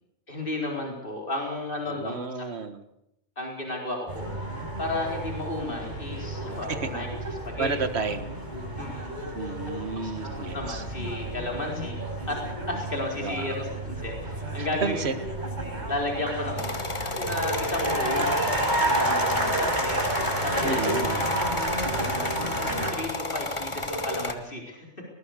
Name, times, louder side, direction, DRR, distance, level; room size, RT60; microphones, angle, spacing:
voice 1, 0.3-2.5 3.4-4.3 4.5-7.1 7.4-7.7 8.8-9.1 9.7-10.1 10.4-12.0 12.3-12.4 12.7-15.0 15.9-20.0 20.4-21.7 22.0-22.3 22.9-24.9, left 2 dB, 50° left, 0 dB, 4.6 m, -33 dB
voice 2, 1.9-2.8 6.9-7.0 7.6-8.3 9.3-10.8 13.2-13.6 14.6-15.1 20.6-21.2, right 4 dB, 65° right, 9 dB, 1.8 m, -31 dB
sound 1, 4.1-22.9, right 1 dB, 40° right, 5.6 m, -31 dB
sound 2, 16.6-24.3, left 1 dB, 25° left, 1.5 m, -32 dB
20.5 x 19.5 x 6.7 m, 0.82 s
omnidirectional pair, 1.2 m